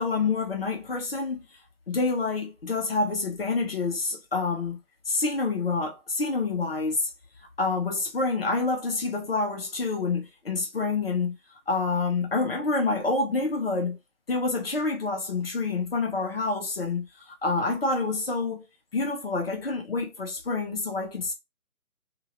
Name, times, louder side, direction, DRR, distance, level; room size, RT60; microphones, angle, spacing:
voice 1, 0.0-1.4 1.9-4.8 5.1-7.1 7.6-11.4 11.7-14.0 14.3-18.7 18.9-21.3, left 3 dB, 40° left, 0.7 m, -27 dB
2.7 x 2.1 x 2.8 m
figure-of-eight pair, 145°, 45 cm